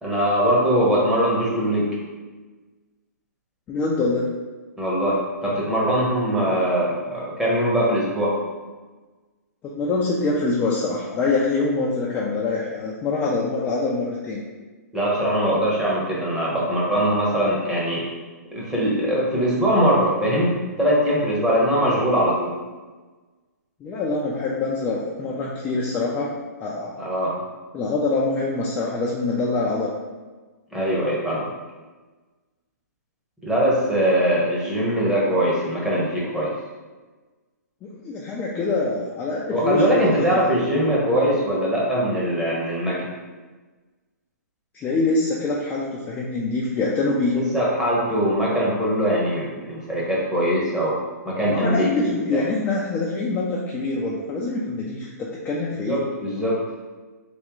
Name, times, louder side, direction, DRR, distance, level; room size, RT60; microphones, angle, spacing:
voice 1, 0.0-1.9 4.8-8.3 14.9-18.0 18.5-22.5 27.0-27.4 30.7-31.5 33.4-36.5 39.5-43.1 47.3-51.0 51.2-51.9 52.3-52.4 55.9-56.6, equal, 5° right, -6 dB, 0.9 m, -21 dB
voice 2, 3.7-4.3 9.6-14.4 23.8-26.3 26.6-27.0 27.7-29.9 37.8-40.4 44.7-47.4 51.5-56.0, left 3 dB, 15° left, -5 dB, 0.4 m, -25 dB
3.5 x 3.1 x 3.0 m, 1.3 s
hypercardioid pair, 145°, 9 cm